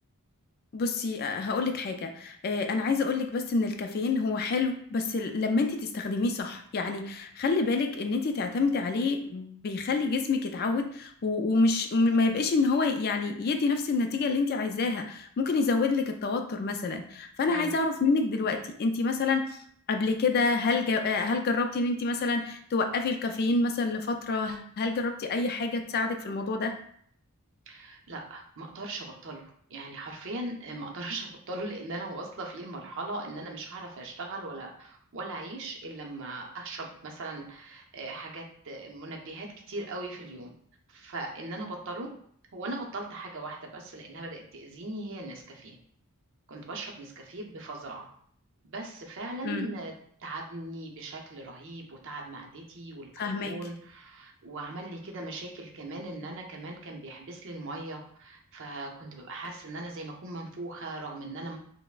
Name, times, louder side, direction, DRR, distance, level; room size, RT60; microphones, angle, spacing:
voice 1, 0.7-19.6 19.9-26.7 49.4-49.7 53.2-53.6, left 3 dB, 45° left, 6 dB, 0.3 m, -27 dB
voice 2, 27.7-40.5 40.9-42.1 42.5-45.8 46.5-48.1 48.6-49.9 50.2-61.6, right 2 dB, 55° right, 1 dB, 0.6 m, -39 dB
5.4 x 2.0 x 2.4 m, 0.64 s
head